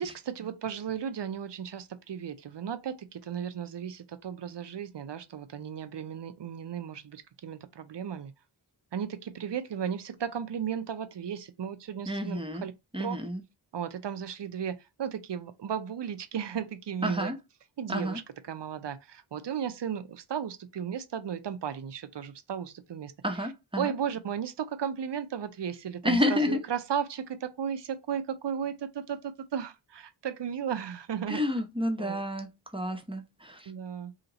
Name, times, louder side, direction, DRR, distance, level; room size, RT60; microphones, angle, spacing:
voice 1, 0.0-8.3 8.9-12.7 13.0-13.2 13.7-17.3 17.8-18.2 18.5-23.1 23.8-31.4 32.0-32.2 33.7-34.1, right 8 dB, 60° right, 0.6 m, -35 dB
voice 2, 12.1-12.7 12.9-13.4 17.0-17.4 17.9-18.2 23.2-23.9 26.0-26.6 31.3-33.7, left 1 dB, 10° right, 0.7 m, -30 dB
2.8 x 2.8 x 3.9 m
wide cardioid pair, 65°, 47 cm